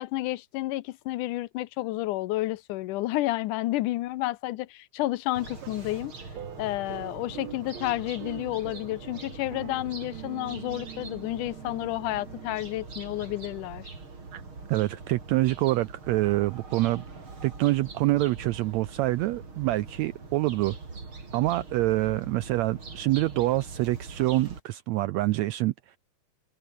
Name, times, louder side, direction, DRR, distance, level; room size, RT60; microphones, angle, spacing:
voice 1, 0.0-6.1 6.6-13.9, left 17 dB, 80° left, 2.2 m, -31 dB
sound 1, 5.3-24.6, right 4 dB, 40° right, 5.3 m, -43 dB
sound 2, 6.3-12.9, right 12 dB, 65° right, 2.2 m, -45 dB
voice 2, 14.7-17.0 17.4-20.8 21.3-25.7, right 18 dB, 85° right, 1.6 m, -26 dB
omnidirectional pair, 3.7 m